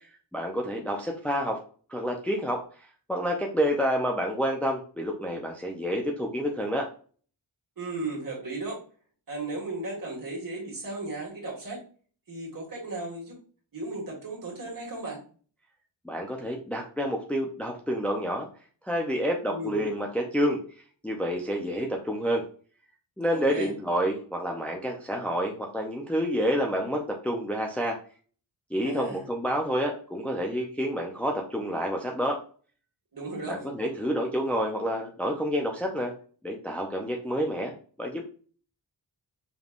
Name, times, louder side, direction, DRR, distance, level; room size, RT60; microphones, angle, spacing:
voice 1, 0.3-1.6 1.9-2.6 3.1-6.9 16.0-18.5 18.8-20.6 21.0-22.4 23.2-28.0 28.7-32.4 33.5-36.1 36.4-37.7 38.0-38.2, equal, 5° left, 0 dB, 0.6 m, -28 dB
voice 2, 7.8-8.8 9.3-11.8 12.3-13.4 13.7-15.2 19.4-19.8 23.3-23.7 28.8-29.2 33.1-33.6 33.9-34.0, right 2 dB, 45° right, -2 dB, 2.1 m, -35 dB
5.2 x 3.3 x 2.5 m, 0.41 s
wide cardioid pair, 165°, 46 cm